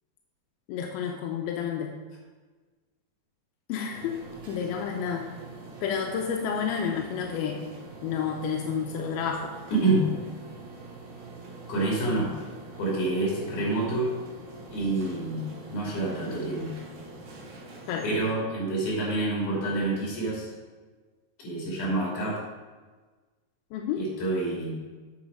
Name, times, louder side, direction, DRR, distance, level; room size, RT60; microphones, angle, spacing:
voice 1, 0.7-1.9 3.7-5.3 5.8-7.6 8.0-9.5 17.9-18.1 23.7-24.0, left 7 dB, 90° left, 1 dB, 2.6 m, -30 dB
sound 1, 3.9-18.2, right 3 dB, 65° right, 1.2 m, -45 dB
voice 2, 9.7-10.1 11.7-12.3 12.8-14.1 14.7-16.8 18.0-20.5 21.4-22.4 24.0-24.8, right 2 dB, 60° left, -4 dB, 4.3 m, -27 dB
8.2 x 7.0 x 4.9 m, 1.3 s
omnidirectional pair, 4.2 m